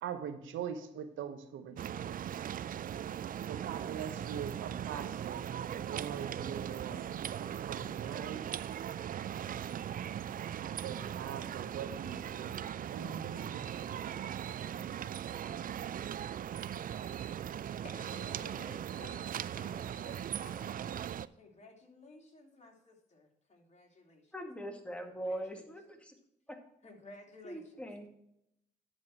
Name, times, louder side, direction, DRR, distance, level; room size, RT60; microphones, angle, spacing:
voice 1, 0.0-2.0 3.5-5.5 5.9-7.0 7.4-8.6 10.6-14.0, right 8 dB, 75° right, 9 dB, 1.1 m, -42 dB
sound 1, 1.8-21.3, right 10 dB, 45° right, 0.4 m, -39 dB
voice 2, 17.8-19.2 19.5-21.1 21.3-24.3 25.1-25.6 26.8-27.9, left 2 dB, 35° left, 0 dB, 2.8 m, -55 dB
voice 3, 24.3-26.1 27.4-28.1, right 1 dB, 5° left, 3 dB, 2.1 m, -41 dB
11.0 x 4.4 x 6.0 m, 0.79 s
hypercardioid pair, 50°, 20 cm